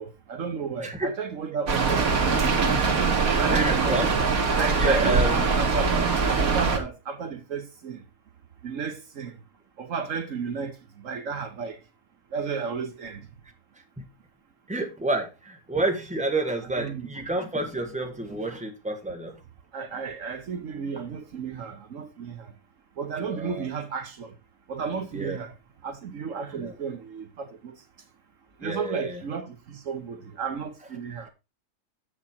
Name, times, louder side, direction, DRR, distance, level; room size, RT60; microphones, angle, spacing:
voice 1, 0.0-2.6 3.3-4.0 4.6-8.0 8.6-9.3 9.8-11.8 12.3-13.2 16.8-17.1 19.7-22.5 23.0-24.3 24.7-25.5 25.8-27.7 28.6-31.3, right 6 dB, 65° right, 1.2 m, -33 dB
voice 2, 0.8-1.1 3.5-4.1 4.8-5.5 14.0-14.1 14.7-19.3 23.2-23.7 25.1-25.4 26.6-26.7 28.6-29.2, right 2 dB, 5° right, 1.4 m, -29 dB
Rain, 1.7-6.8, right 4 dB, 80° right, 1.8 m, -23 dB
7.3 x 6.6 x 4.3 m
omnidirectional pair, 1.5 m